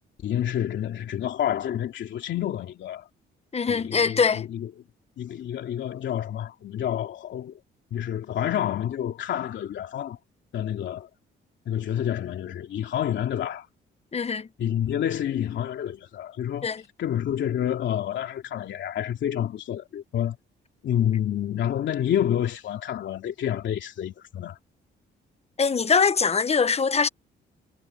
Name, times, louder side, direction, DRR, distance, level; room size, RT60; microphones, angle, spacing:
voice 1, 0.2-3.1 3.7-4.7 5.2-7.6 7.9-10.2 10.5-11.1 11.7-13.7 14.6-16.7 17.0-20.4 20.8-24.6, left 10 dB, 70° left, 2.7 m, -28 dB
voice 2, 3.5-4.5 14.1-14.5 16.6-16.8 25.6-27.1, left 5 dB, 30° left, 1.1 m, -22 dB
cardioid pair, 90°, 20 cm